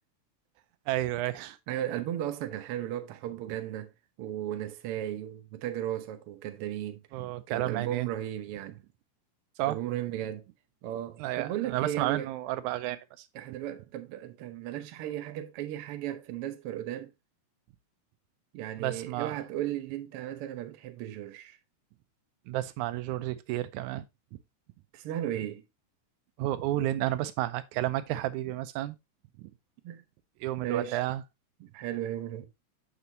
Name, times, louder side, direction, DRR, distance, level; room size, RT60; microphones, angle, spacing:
voice 1, 0.9-1.6 7.1-8.1 9.6-9.8 11.2-13.3 18.8-19.4 22.5-24.1 26.4-29.0 29.4-29.5 30.4-31.2, right 15 dB, 90° right, 2.0 m, -31 dB
voice 2, 1.7-3.9 4.2-7.0 7.5-8.8 9.7-10.5 10.8-12.3 13.3-17.1 18.5-21.6 24.9-25.6 29.8-30.0 30.6-31.0 31.6-32.5, right 12 dB, 70° right, 1.4 m, -35 dB
7.0 x 6.7 x 2.7 m
omnidirectional pair, 3.4 m